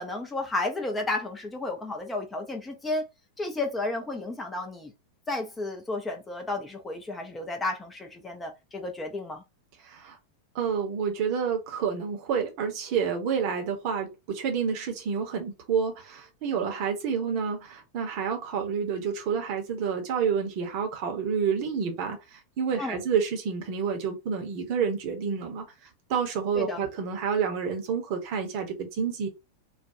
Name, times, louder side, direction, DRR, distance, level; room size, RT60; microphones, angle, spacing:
voice 1, 0.0-3.0 3.4-4.9 5.3-9.4 22.8-23.0 26.6-26.8, left 2 dB, 10° left, 0.6 m, -32 dB
voice 2, 9.8-10.2 10.5-25.6 26.1-29.3, right 6 dB, 45° right, 0.8 m, -29 dB
2.4 x 2.2 x 2.6 m
figure-of-eight pair, 90°, 0 cm